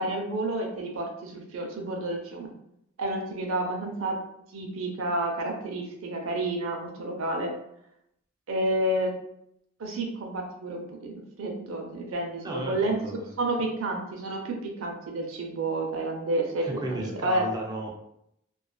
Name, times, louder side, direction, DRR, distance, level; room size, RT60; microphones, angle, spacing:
voice 1, 0.0-2.5 3.0-4.2 4.5-7.5 8.5-9.1 9.8-13.0 13.4-17.4, right 1 dB, 85° right, 1 dB, 0.5 m, -30 dB
voice 2, 12.4-13.3 16.6-17.9, right 1 dB, 20° right, 0 dB, 0.4 m, -34 dB
2.4 x 2.3 x 2.2 m, 0.76 s
head